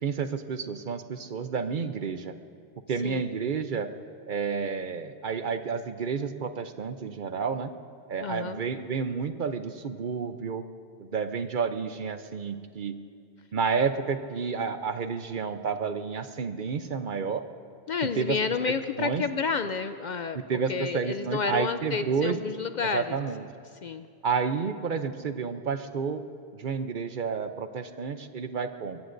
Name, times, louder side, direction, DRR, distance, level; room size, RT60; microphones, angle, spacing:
voice 1, 0.0-2.3 2.9-3.9 4.3-7.7 8.1-10.6 11.0-13.0 13.5-17.4 18.0-18.4 18.6-19.2 20.3-22.4 22.9-23.5 24.2-26.2 26.5-29.0, right 5 dB, 55° right, 9 dB, 0.8 m, -30 dB
voice 2, 8.2-8.6 17.9-20.4 20.7-23.2 23.8-24.1, left 5 dB, 55° left, 10 dB, 0.5 m, -30 dB
23.5 x 23.0 x 2.6 m, 2.2 s
omnidirectional pair, 1.1 m